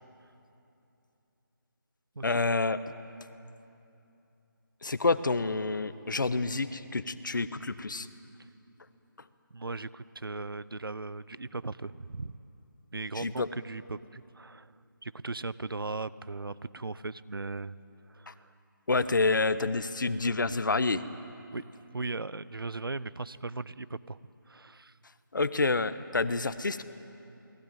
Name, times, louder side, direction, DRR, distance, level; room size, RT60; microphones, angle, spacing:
voice 1, 2.2-2.8 4.8-8.1 13.1-13.5 18.3-18.4 18.9-21.0 25.3-26.8, left 3 dB, 60° left, 12 dB, 1.4 m, -28 dB
voice 2, 9.5-12.4 12.9-14.7 15.0-17.8 18.1-18.5 21.5-21.6 21.9-24.2 24.5-24.9, right 3 dB, 80° right, 17 dB, 1.0 m, -38 dB
28.0 x 21.0 x 9.3 m, 2.8 s
figure-of-eight pair, 165°, 12 cm